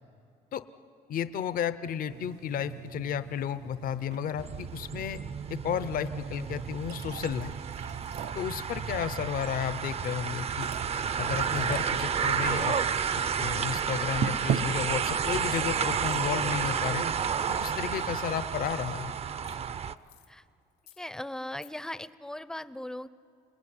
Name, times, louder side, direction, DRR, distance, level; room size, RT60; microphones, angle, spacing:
voice 1, 1.1-5.2 5.5-7.5 8.3-10.7 11.2-12.8 13.4-17.1 17.6-19.1, left 9 dB, 55° left, 13 dB, 0.8 m, -33 dB
sound 1, 2.1-18.4, right 9 dB, 75° right, 0.8 m, -41 dB
sound 2, 4.4-19.9, right 7 dB, 35° right, 0.6 m, -31 dB
sound 3, 15.5-15.6 16.0-16.2 19.5-19.6 20.0-20.3 20.7-21.0 21.4-21.7, left 12 dB, 80° left, 2.1 m, -58 dB
voice 2, 21.0-23.1, left 1 dB, 5° left, 15 dB, 0.6 m, -38 dB
27.5 x 19.5 x 9.7 m, 2.6 s
cardioid pair, 110°, 17 cm